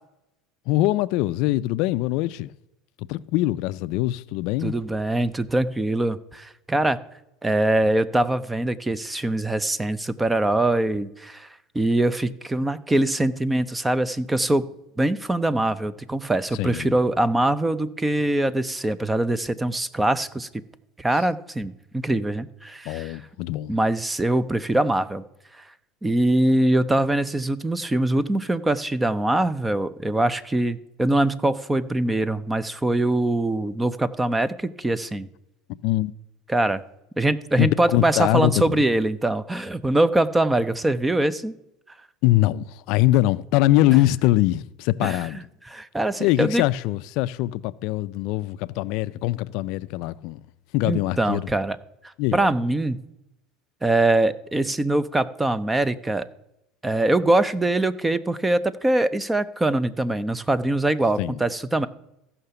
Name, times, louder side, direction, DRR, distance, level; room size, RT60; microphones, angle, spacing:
voice 1, 0.7-2.5 3.0-4.8 16.5-17.0 22.9-23.8 35.8-36.1 37.6-38.8 42.2-45.4 46.2-50.4 50.7-51.5 52.2-52.5 61.2-61.4, left 16 dB, 65° left, 0.4 m, -23 dB
voice 2, 4.6-7.0 7.4-11.5 11.7-14.7 15.0-20.5 21.0-23.2 23.7-25.2 25.6-25.7 26.0-35.3 36.5-36.8 37.2-41.5 45.0-45.2 45.7-46.6 50.9-51.8 52.0-53.0 53.8-56.3 56.8-61.9, right 1 dB, 10° right, 0.5 m, -23 dB
15.0 x 5.7 x 6.8 m
supercardioid pair, 115°, 0 cm